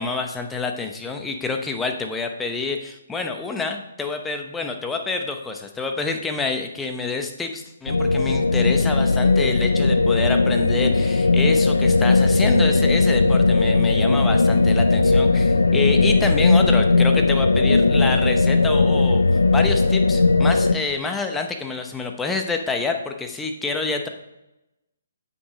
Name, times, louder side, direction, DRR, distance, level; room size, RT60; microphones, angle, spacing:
voice 1, 0.0-19.2 19.5-24.1, left 4 dB, 10° left, 4 dB, 0.8 m, -27 dB
sound 1, 7.9-20.7, left 3 dB, 85° left, 0.5 m, -18 dB
8.1 x 5.9 x 4.9 m, 0.95 s
figure-of-eight pair, 140°, 0 cm